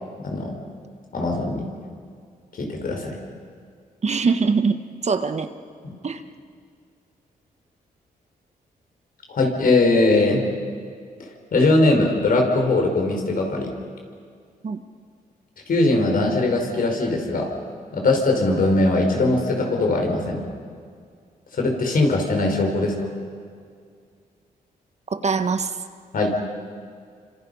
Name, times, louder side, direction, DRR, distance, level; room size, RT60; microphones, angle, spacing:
voice 1, 0.2-0.6 1.1-1.7 2.6-3.2 5.8-5.9 9.3-10.4 11.5-13.7 15.7-17.5 17.9-20.4 21.5-23.0 26.1-26.3, left 2 dB, 65° left, 2 dB, 5.2 m, -20 dB
voice 2, 4.0-5.5 6.0-6.2 14.6-14.8 25.1-25.8, right 5 dB, 45° right, 9 dB, 1.5 m, -23 dB
28.5 x 26.0 x 5.7 m, 2.2 s
cardioid pair, 75°, 16 cm